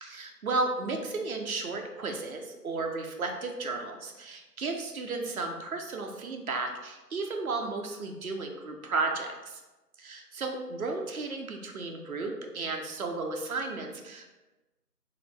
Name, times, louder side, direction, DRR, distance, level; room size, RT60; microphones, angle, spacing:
voice 1, 0.0-9.6 10.0-14.3, right 3 dB, 60° right, 3 dB, 0.7 m, -34 dB
3.9 x 2.9 x 3.3 m, 1.1 s
figure-of-eight pair, 170°, 48 cm